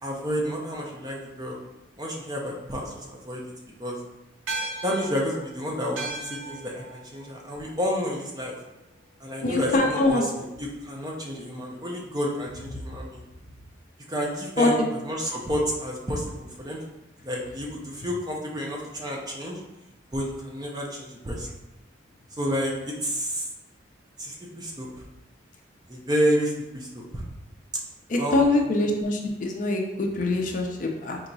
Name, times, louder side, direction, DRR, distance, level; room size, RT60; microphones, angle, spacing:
voice 1, 0.0-1.6 2.0-3.4 3.8-4.0 4.8-8.5 9.2-13.2 14.1-16.8 17.2-19.6 20.1-21.5 22.4-23.5 24.2-25.0 25.9-27.2 28.2-28.7, equal, 20° right, -2 dB, 0.5 m, -30 dB
sound 1, 4.5-9.1, right 2 dB, 85° right, 0.5 m, -38 dB
voice 2, 9.4-10.2 14.6-14.7 28.1-31.2, left 2 dB, 45° left, 2 dB, 0.4 m, -23 dB
4.4 x 2.9 x 2.6 m, 0.98 s
head